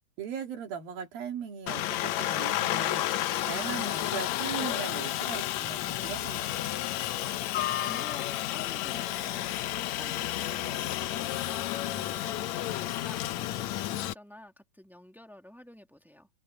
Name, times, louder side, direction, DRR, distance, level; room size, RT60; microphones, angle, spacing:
voice 1, 0.2-3.1 3.5-6.5, right 7 dB, 80° right, 4.4 m, -38 dB
Aircraft, 1.7-14.1, left 14 dB, 85° left, 1.6 m, -31 dB
sound 1, 3.1-13.4, left 6 dB, 50° left, 1.1 m, -50 dB
Bass guitar, 4.5-8.8, left 12 dB, 65° left, 2.0 m, -52 dB
voice 2, 7.8-16.3, left 1 dB, ahead, 1.0 m, -50 dB
omnidirectional pair, 4.1 m